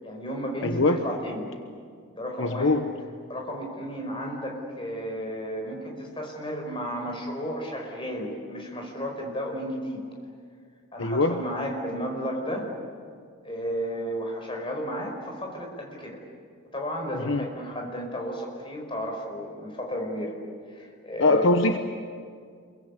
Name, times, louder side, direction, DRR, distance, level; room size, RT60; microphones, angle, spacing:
voice 1, 0.0-1.5 2.1-2.7 3.3-10.1 10.9-12.7 13.4-16.2 16.7-20.4 20.7-21.5, equal, 25° left, 1 dB, 4.9 m, -33 dB
voice 2, 0.6-1.0 2.4-2.9 11.0-11.4 17.1-17.4 21.2-21.8, left 2 dB, 65° left, 6 dB, 1.1 m, -22 dB
28.0 x 23.0 x 8.2 m, 2.1 s
head